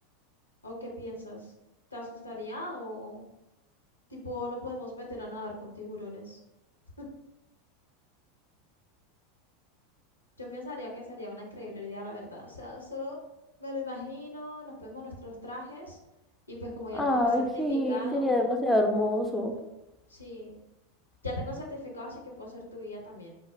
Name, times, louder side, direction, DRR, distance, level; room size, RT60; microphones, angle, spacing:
voice 1, 0.6-1.5 1.9-3.2 4.1-6.4 7.0-7.1 10.4-13.2 13.6-16.0 16.5-18.3 20.1-20.6 21.2-23.3, left 1 dB, 85° left, -1 dB, 0.7 m, -39 dB
voice 2, 17.0-19.5, left 1 dB, 5° left, 2 dB, 0.4 m, -26 dB
3.3 x 2.0 x 3.1 m, 0.94 s
figure-of-eight pair, 85°, 0 cm